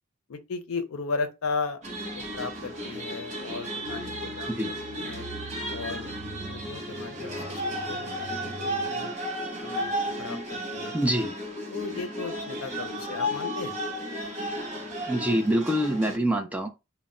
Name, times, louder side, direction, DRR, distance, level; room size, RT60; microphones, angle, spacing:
voice 1, 0.3-1.8 2.1-5.3 5.7-6.1 6.4-9.1 9.6-9.9 10.2-10.9 11.7-13.8, left 4 dB, 80° left, 0.5 m, -36 dB
sound 1, 1.8-16.2, equal, 35° right, 0.7 m, -34 dB
sound 2, 3.8-8.9, right 4 dB, 75° right, 0.5 m, -45 dB
voice 2, 10.9-11.4 15.1-16.7, right 1 dB, 5° right, 0.3 m, -25 dB
2.1 x 2.0 x 3.6 m
head